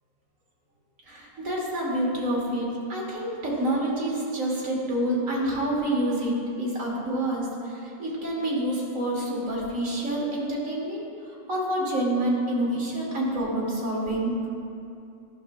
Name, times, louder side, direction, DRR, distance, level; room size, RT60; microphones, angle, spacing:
voice 1, 1.1-11.1 11.5-14.4, right 1 dB, 75° right, -4 dB, 1.7 m, -27 dB
12.0 x 5.9 x 2.2 m, 2.7 s
omnidirectional pair, 1.4 m